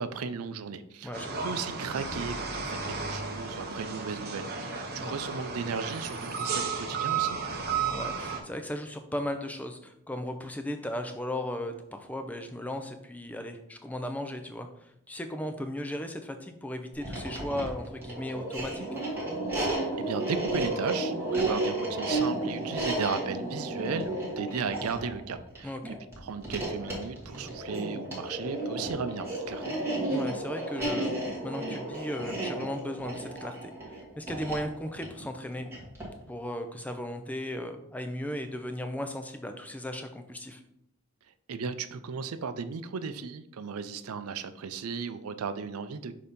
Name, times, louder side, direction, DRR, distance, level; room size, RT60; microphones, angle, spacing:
voice 1, 0.0-1.2 1.4-7.4 19.6-29.8 41.5-46.1, right 5 dB, 90° right, 11 dB, 0.5 m, -36 dB
voice 2, 1.0-1.5 5.0-5.2 7.9-18.9 25.6-26.0 30.1-31.1 31.4-33.7 34.2-35.7 36.3-40.6, left 1 dB, 5° left, 6 dB, 0.5 m, -36 dB
sound 1, 1.1-8.4, right 5 dB, 45° right, 0.8 m, -33 dB
sound 2, 16.9-36.2, right 2 dB, 10° right, 1.6 m, -33 dB
6.4 x 2.8 x 5.2 m, 0.77 s
head